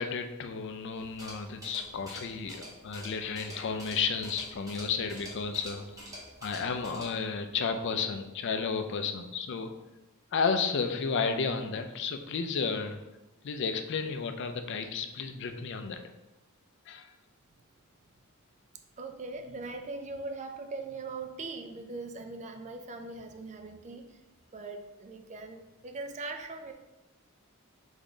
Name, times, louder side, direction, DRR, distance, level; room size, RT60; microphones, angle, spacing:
voice 1, 0.0-5.8 6.4-9.7 10.3-13.0 13.4-16.0 16.9-17.0, left 5 dB, 55° left, 7 dB, 0.4 m, -32 dB
sound 1, 1.0-7.2, equal, 15° right, 1.1 m, -47 dB
voice 2, 19.0-24.2 24.5-26.7, right 3 dB, 35° right, 6 dB, 0.4 m, -40 dB
3.7 x 3.6 x 3.8 m, 1.0 s
head